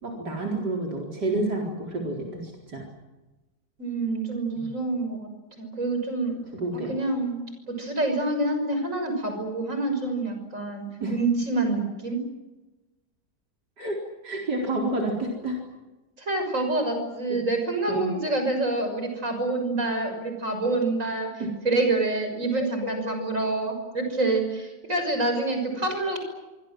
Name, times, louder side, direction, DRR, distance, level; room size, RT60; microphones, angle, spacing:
voice 1, 0.0-2.8 4.6-4.7 6.5-6.9 11.0-11.1 13.8-14.0 14.2-15.6 17.3-17.4 17.9-18.1 21.4-21.5 22.5-22.7, right 2 dB, 75° right, 0 dB, 4.9 m, -29 dB
voice 2, 3.8-5.3 5.6-6.4 6.9-12.2 16.2-21.3 21.6-26.2, right 2 dB, 45° right, 5 dB, 6.8 m, -27 dB
25.5 x 25.0 x 7.7 m, 1.1 s
omnidirectional pair, 1.8 m